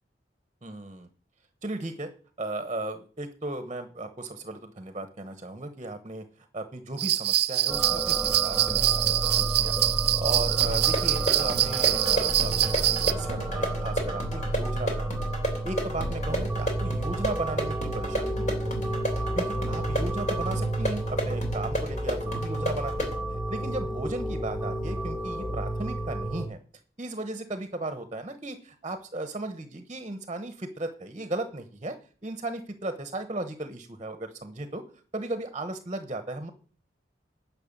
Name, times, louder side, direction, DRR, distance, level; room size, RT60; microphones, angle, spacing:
voice 1, 0.6-1.1 1.6-2.1 2.4-9.7 10.2-15.3 15.6-19.0 19.3-23.2 23.5-26.6 27.0-32.0 32.2-34.8 35.1-36.5, right 2 dB, 30° right, 9 dB, 1.0 m, -36 dB
sound 1, 7.0-13.1, right 14 dB, 65° right, 0.6 m, -25 dB
sound 2, 7.7-26.5, right 1 dB, ahead, 1.7 m, -31 dB
sound 3, 10.6-23.2, equal, 45° left, 3.1 m, -33 dB
11.0 x 5.9 x 7.3 m, 0.41 s
head